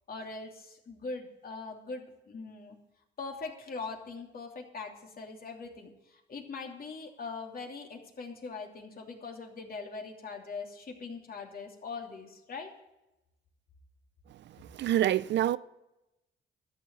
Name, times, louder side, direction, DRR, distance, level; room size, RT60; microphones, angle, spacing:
voice 1, 0.1-2.8 3.2-12.7, left 4 dB, 50° left, 2.9 m, -41 dB
voice 2, 14.8-15.6, right 12 dB, 65° right, 0.5 m, -26 dB
13.0 x 7.1 x 8.8 m
cardioid pair, 90°, 20 cm